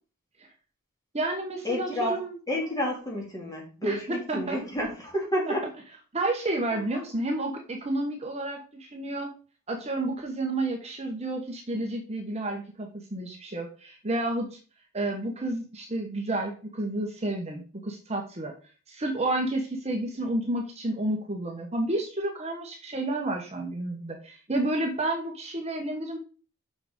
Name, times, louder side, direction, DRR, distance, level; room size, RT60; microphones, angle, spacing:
voice 1, 1.1-2.4 3.8-4.6 5.5-5.6 6.1-9.3 9.7-14.5 14.9-18.5 18.9-26.2, right 2 dB, 30° right, 2 dB, 1.1 m, -30 dB
voice 2, 1.6-2.2 2.5-5.7, equal, 15° left, -1 dB, 2.6 m, -30 dB
6.4 x 5.9 x 5.2 m, 0.36 s
head